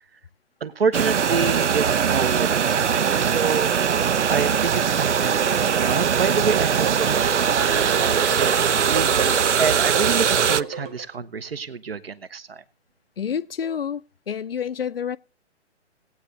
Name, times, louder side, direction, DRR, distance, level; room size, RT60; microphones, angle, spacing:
voice 1, 0.6-4.0 4.3-12.6, right 5 dB, 60° right, 1.2 m, -28 dB
sound 1, 0.9-10.6, right 7 dB, 85° right, 0.5 m, -21 dB
sound 2, 5.2-11.2, right 5 dB, 15° right, 0.7 m, -33 dB
voice 2, 13.2-15.2, left 8 dB, 55° left, 0.6 m, -28 dB
18.0 x 8.8 x 3.9 m
figure-of-eight pair, 135°, 35 cm